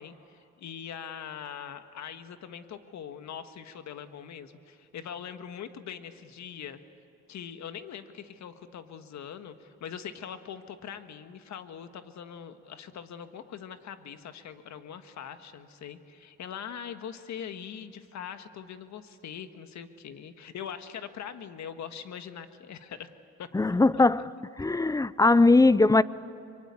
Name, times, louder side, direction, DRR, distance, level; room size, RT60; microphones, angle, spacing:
voice 1, 0.0-6.8 7.3-23.1 23.4-23.5 23.9-24.0, left 8 dB, 65° left, 1.6 m, -42 dB
voice 2, 23.5-24.3 24.6-26.0, left 3 dB, 10° left, 0.5 m, -20 dB
25.0 x 23.0 x 8.4 m
cardioid pair, 90°, 30 cm